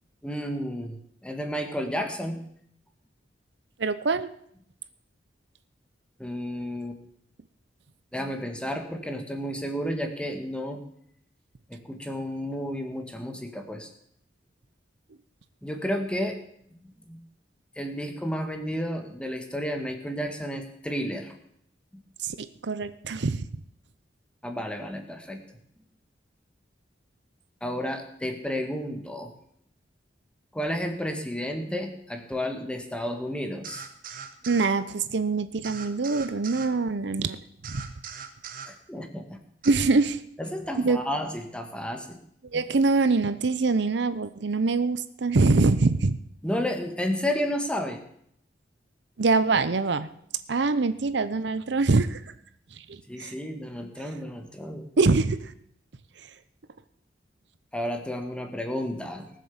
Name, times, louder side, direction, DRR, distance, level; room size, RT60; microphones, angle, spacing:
voice 1, 0.2-2.4 6.2-7.0 8.1-10.8 11.7-13.9 15.6-16.4 17.1-17.2 17.7-21.4 24.4-25.4 27.6-29.3 30.5-33.9 38.6-39.4 40.4-42.2 42.5-42.6 46.4-48.0 53.1-54.9 57.7-59.3, equal, 5° left, 4 dB, 1.7 m, -32 dB
voice 2, 3.8-4.3 22.2-23.4 34.5-37.4 37.7-37.8 39.7-40.2 40.8-41.0 42.5-46.2 49.2-50.1 50.5-52.2 52.9-53.3 55.0-55.5, right 3 dB, 70° right, 13 dB, 0.7 m, -24 dB
sound 1, 33.6-34.7 35.6-36.7 37.6-38.7 39.6-39.7, right 7 dB, 50° right, 1.3 m, -40 dB
19.0 x 7.5 x 7.2 m, 0.70 s
head